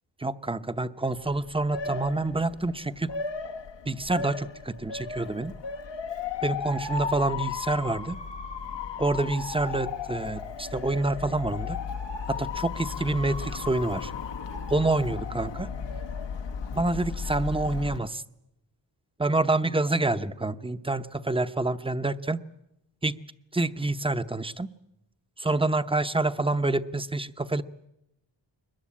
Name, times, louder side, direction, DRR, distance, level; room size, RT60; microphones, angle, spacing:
voice 1, 0.2-3.1 3.9-5.5 6.4-8.2 9.0-11.8 12.3-14.1 14.7-15.7 16.7-18.2 19.2-22.4 23.0-23.1 23.5-24.7 25.4-27.6, right 2 dB, 10° right, 12 dB, 0.9 m, -27 dB
Motor vehicle (road) / Siren, 1.2-18.0, left 5 dB, 75° left, 1.1 m, -35 dB
22.0 x 21.0 x 8.7 m, 0.86 s
cardioid pair, 70°, 44 cm